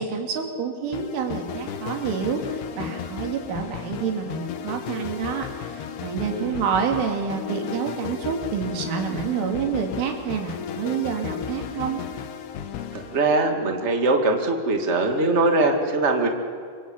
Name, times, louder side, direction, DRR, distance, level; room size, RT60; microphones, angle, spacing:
voice 1, 0.0-5.5 6.0-12.0, right 6 dB, 80° right, 3 dB, 5.2 m, -28 dB
sound 1, 0.9-13.9, left 7 dB, 65° left, 3.2 m, -35 dB
voice 2, 6.2-6.6 12.9-16.3, right 2 dB, 35° right, 3 dB, 1.1 m, -22 dB
26.5 x 24.5 x 8.8 m, 2.2 s
omnidirectional pair, 5.6 m